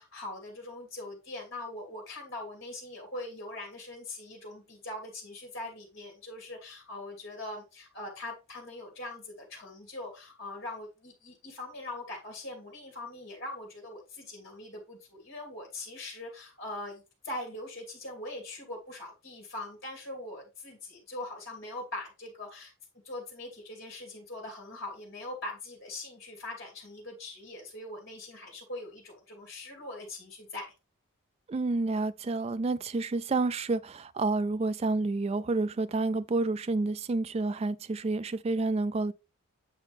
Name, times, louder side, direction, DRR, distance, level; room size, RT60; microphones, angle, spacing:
voice 1, 0.0-22.7 23.0-30.7, left 2 dB, 50° left, 2.5 m, -42 dB
voice 2, 31.5-39.1, right 3 dB, 30° right, 0.3 m, -29 dB
8.4 x 5.1 x 3.4 m
head